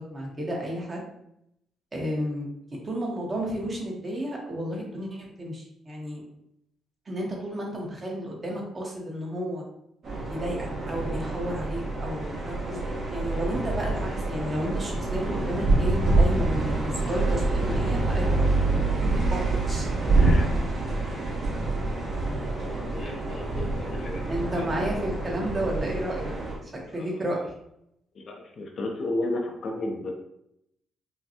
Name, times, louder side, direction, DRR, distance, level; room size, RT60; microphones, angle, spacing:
voice 1, 0.1-1.0 1.9-6.2 7.1-9.6 10.3-18.5 18.8-19.9 24.3-26.3 26.6-27.5, equal, 25° right, -2 dB, 1.1 m, -32 dB
sound 1, 10.0-26.6, right 2 dB, 50° right, 1.3 m, -26 dB
voice 2, 20.1-20.5 22.6-24.3 27.0-27.2 28.2-30.1, left 2 dB, 45° left, 2 dB, 0.6 m, -33 dB
5.5 x 2.2 x 2.8 m, 0.78 s
cardioid pair, 135°, 0 cm